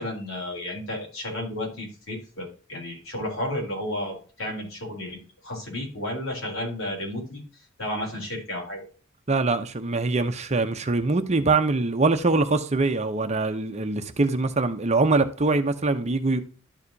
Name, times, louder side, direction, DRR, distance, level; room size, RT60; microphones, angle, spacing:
voice 1, 0.0-5.2 5.4-7.4 7.8-8.9, left 1 dB, 80° left, 3.7 m, -32 dB
voice 2, 9.3-16.4, right 3 dB, 35° right, 0.7 m, -23 dB
12.0 x 4.8 x 2.7 m
head